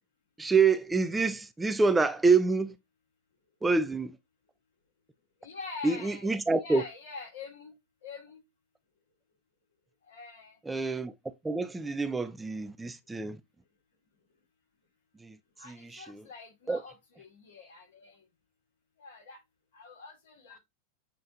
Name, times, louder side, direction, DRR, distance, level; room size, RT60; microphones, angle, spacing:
voice 1, 0.4-2.7 3.6-4.1 5.8-6.8 10.7-11.1 11.4-13.4 15.2-15.3 15.7-16.0 16.7-16.8, right 4 dB, 10° right, 0.4 m, -26 dB
voice 2, 5.4-6.3 6.6-8.4 10.1-10.6 15.6-18.2 19.0-19.4 19.7-20.6, left 4 dB, 65° left, 1.6 m, -45 dB
7.3 x 2.5 x 2.8 m
figure-of-eight pair, 95°, 0 cm